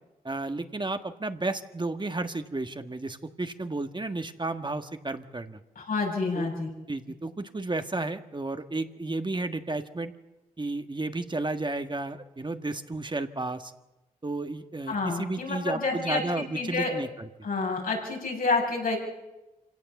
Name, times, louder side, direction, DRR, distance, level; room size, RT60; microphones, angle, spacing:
voice 1, 0.2-5.6 6.3-6.5 6.9-10.1 10.6-13.7 14.2-17.3, right 2 dB, 30° right, 7 dB, 1.5 m, -32 dB
voice 2, 5.8-6.7 14.9-16.2 16.5-16.9 17.4-19.0, left 3 dB, 80° left, -1 dB, 6.4 m, -28 dB
26.0 x 17.0 x 7.2 m, 1.0 s
cardioid pair, 45°, 15 cm